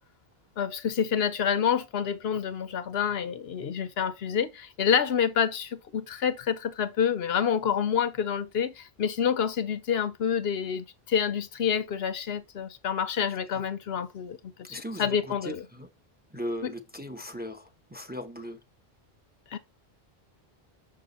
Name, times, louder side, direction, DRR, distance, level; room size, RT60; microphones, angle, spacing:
voice 1, 0.6-14.4 14.7-15.6 19.5-19.6, left 7 dB, 80° left, 1.0 m, -28 dB
voice 2, 14.7-15.9 16.3-18.6, equal, 10° right, 0.9 m, -38 dB
6.6 x 5.7 x 3.9 m
omnidirectional pair, 1.0 m